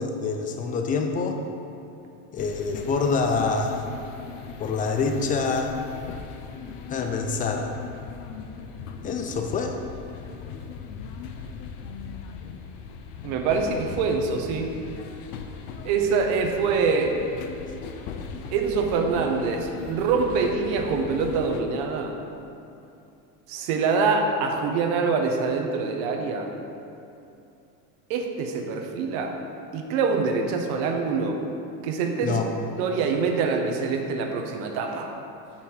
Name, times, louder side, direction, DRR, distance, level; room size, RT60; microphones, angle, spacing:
voice 1, 0.0-1.4 2.3-3.8 4.6-5.7 6.9-7.7 9.0-9.8 32.2-32.5, left 4 dB, 20° left, 4 dB, 0.4 m, -26 dB
sound 1, 2.4-21.6, left 6 dB, 60° left, 0.7 m, -39 dB
voice 2, 13.2-14.7 15.8-17.2 18.5-22.2 23.5-26.5 28.1-29.3 29.7-31.4 31.8-32.4 32.8-35.1, right 4 dB, 60° right, 3 dB, 1.0 m, -25 dB
6.6 x 5.8 x 4.3 m, 2.7 s
supercardioid pair, 135°, 45 cm